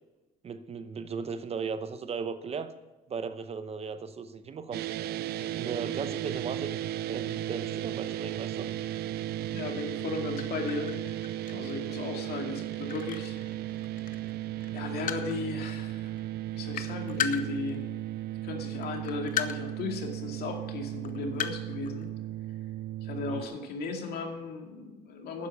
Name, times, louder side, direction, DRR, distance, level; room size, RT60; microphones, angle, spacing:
voice 1, 0.4-2.7 3.1-4.9 5.3-6.8 7.1-8.7 23.3-23.6, right 5 dB, 35° right, 11 dB, 0.8 m, -37 dB
sound 1, 4.7-23.4, right 13 dB, 70° right, 0.5 m, -35 dB
voice 2, 9.5-11.2 11.5-13.4 14.7-16.2 16.5-17.9 18.4-22.1 23.0-25.5, left 4 dB, 70° left, 3 dB, 2.3 m, -36 dB
sound 2, 10.0-10.1 10.4-14.4 14.6-15.5 16.1-16.2 16.5-18.2 18.8-19.8 20.1-20.2 20.8-22.0, left 9 dB, 50° left, 0.9 m, -36 dB
11.5 x 9.8 x 5.5 m, 1.1 s
cardioid pair, 110°, 17 cm